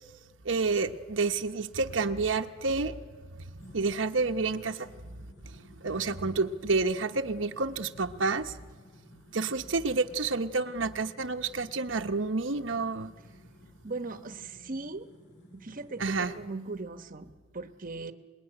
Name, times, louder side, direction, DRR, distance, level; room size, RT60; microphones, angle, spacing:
voice 1, 0.4-3.0 3.7-4.9 5.8-8.6 9.3-13.1 16.0-16.3, right 3 dB, 85° right, 5 dB, 1.0 m, -29 dB
sound 1, 3.6-16.4, left 1 dB, 70° left, 7.2 m, -55 dB
voice 2, 13.8-15.1 15.5-18.1, right 3 dB, 45° right, 9 dB, 1.0 m, -39 dB
25.5 x 20.5 x 10.0 m, 1.5 s
head